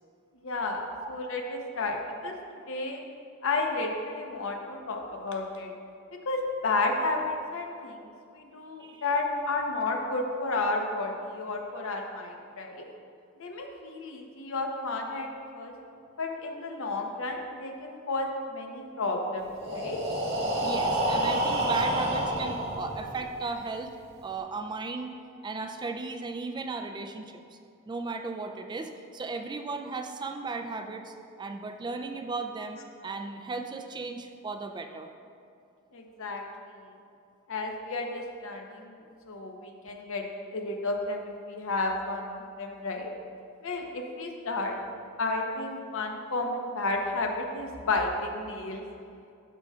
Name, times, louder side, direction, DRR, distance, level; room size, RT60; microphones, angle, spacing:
voice 1, 0.4-2.3 2.7-3.0 3.4-5.7 6.3-12.8 13.4-15.3 15.5-15.7 16.2-20.0 35.9-36.4 37.5-39.0 39.3-40.2 40.5-43.1 43.6-44.8 45.2-48.8, left 2 dB, 65° left, 2 dB, 0.8 m, -32 dB
Breathing, 19.5-23.4, right 1 dB, 75° right, 1.3 m, -29 dB
voice 2, 20.6-23.9 24.2-25.2 25.4-27.4 27.9-35.1, right 3 dB, 20° right, 6 dB, 0.3 m, -35 dB
12.5 x 5.6 x 2.3 m, 2.5 s
head